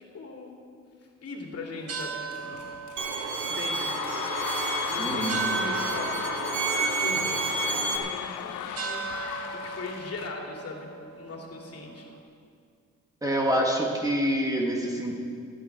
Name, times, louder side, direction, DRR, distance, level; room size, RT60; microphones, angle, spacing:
voice 1, 0.1-0.5 1.2-2.6 3.5-3.9 4.9-6.5 7.0-9.1 9.5-12.0, left 3 dB, 50° left, -1 dB, 2.8 m, -39 dB
sound 1, 1.7-12.2, right 6 dB, 50° right, 1.6 m, -39 dB
sound 2, 2.0-10.3, left 10 dB, 90° left, 0.8 m, -35 dB
Bowed string instrument, 3.0-8.0, right 4 dB, 75° right, 1.6 m, -30 dB
voice 2, 5.0-5.5 13.2-15.1, equal, 10° right, -1 dB, 2.2 m, -26 dB
15.0 x 13.0 x 4.7 m, 2.2 s
cardioid pair, 90°, 30 cm